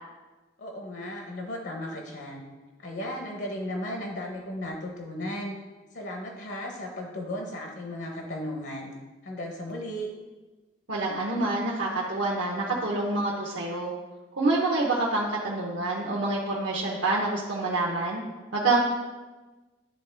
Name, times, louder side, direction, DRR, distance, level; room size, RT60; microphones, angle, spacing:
voice 1, 0.6-2.5 2.8-5.5 5.9-8.9 9.2-10.1, left 1 dB, 75° left, 1 dB, 0.9 m, -35 dB
voice 2, 10.9-13.9 14.4-18.2 18.5-18.8, right 2 dB, 85° right, -3 dB, 0.9 m, -27 dB
10.5 x 3.6 x 3.3 m, 1.2 s
head